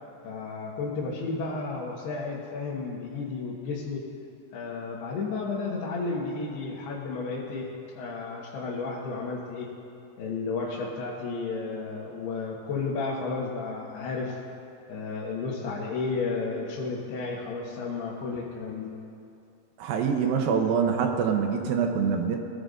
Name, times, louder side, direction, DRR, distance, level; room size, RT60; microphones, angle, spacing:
voice 1, 0.2-4.0 4.5-7.7 7.9-9.7 10.2-14.4 14.9-18.9, left 4 dB, 90° left, -6 dB, 3.4 m, -32 dB
voice 2, 19.8-22.4, right 6 dB, 75° right, 3 dB, 2.4 m, -25 dB
21.5 x 14.5 x 2.6 m, 2.6 s
omnidirectional pair, 4.6 m